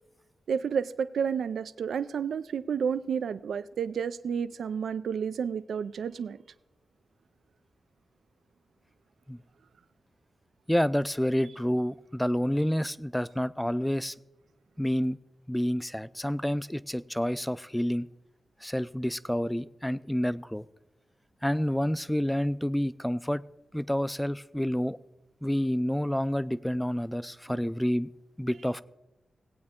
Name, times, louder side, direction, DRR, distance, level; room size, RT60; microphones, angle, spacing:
voice 1, 0.5-6.4 27.5-27.6, right 7 dB, 85° right, 0.3 m, -31 dB
voice 2, 10.7-14.1 14.8-15.2 15.5-18.1 18.6-20.6 21.4-23.4 23.7-25.0 25.4-28.1 28.4-28.8, equal, 5° left, 0.4 m, -28 dB
18.0 x 8.6 x 3.6 m
cardioid pair, 65°, 0 cm